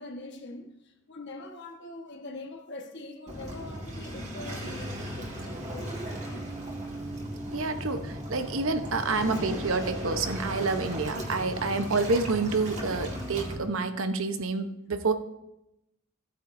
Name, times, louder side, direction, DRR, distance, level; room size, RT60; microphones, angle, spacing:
voice 1, 0.0-6.5 9.0-9.8 11.7-11.8, left 2 dB, 60° left, 1.4 m, -43 dB
Waves surf, 3.3-13.6, right 1 dB, 35° right, 2.1 m, -36 dB
voice 2, 7.5-15.1, right 3 dB, 90° right, 0.9 m, -28 dB
15.0 x 9.0 x 2.6 m
head